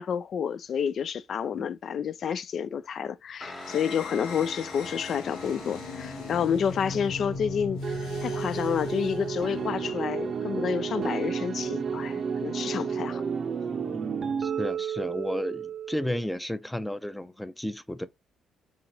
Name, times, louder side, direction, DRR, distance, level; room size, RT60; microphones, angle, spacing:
voice 1, 0.0-13.2, left 7 dB, 55° left, 0.4 m, -30 dB
Guitar, 3.4-12.2, left 1 dB, 25° left, 1.2 m, -45 dB
sound 1, 3.5-10.1, left 2 dB, 70° left, 0.9 m, -39 dB
sound 2, 7.8-16.3, right 6 dB, 50° right, 0.6 m, -32 dB
voice 2, 14.4-18.1, left 1 dB, 5° left, 0.6 m, -33 dB
3.8 x 3.5 x 2.8 m
figure-of-eight pair, 45°, 0 cm